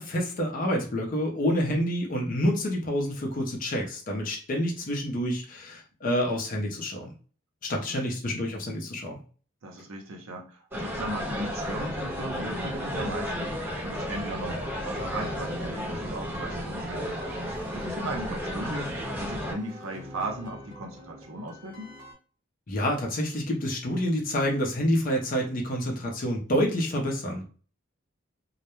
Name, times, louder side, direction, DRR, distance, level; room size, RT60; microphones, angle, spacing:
voice 1, 0.0-7.1 7.6-9.2 22.7-27.4, equal, 40° left, 1 dB, 0.6 m, -28 dB
voice 2, 7.7-8.1 9.6-13.5 13.8-17.2 17.5-21.9, right 1 dB, 75° right, 2 dB, 0.7 m, -37 dB
sound 1, 10.7-19.5, equal, 10° right, 0.8 m, -33 dB
sound 2, 14.0-22.1, right 1 dB, 35° right, 0.9 m, -47 dB
2.3 x 2.1 x 3.0 m, 0.38 s
head